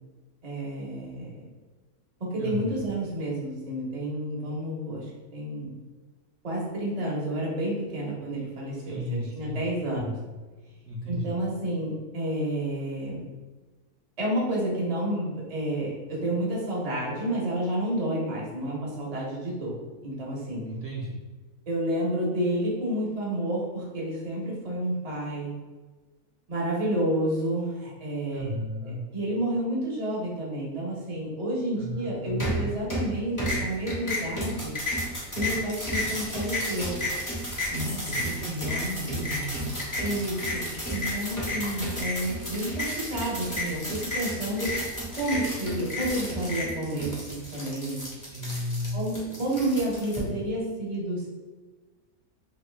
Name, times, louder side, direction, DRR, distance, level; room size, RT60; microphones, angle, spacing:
voice 1, 0.4-1.5 2.2-5.7 6.4-10.2 11.1-13.3 14.2-19.8 20.0-20.7 21.7-25.5 26.5-28.5 28.8-34.8 35.4-37.0 37.7-37.8 40.0-44.8 45.2-48.0 48.9-51.3, right 1 dB, 30° right, -5 dB, 0.7 m, -30 dB
voice 2, 2.4-2.7 8.9-10.2 10.9-11.4 20.7-21.2 28.3-29.0 31.8-32.6 37.7-39.7 48.3-49.0, equal, 65° right, -4 dB, 0.9 m, -34 dB
sound 1, 32.4-33.1 33.4-50.2, left 1 dB, 15° left, 0.7 m, -32 dB
3.0 x 2.6 x 3.2 m, 1.3 s
omnidirectional pair, 1.6 m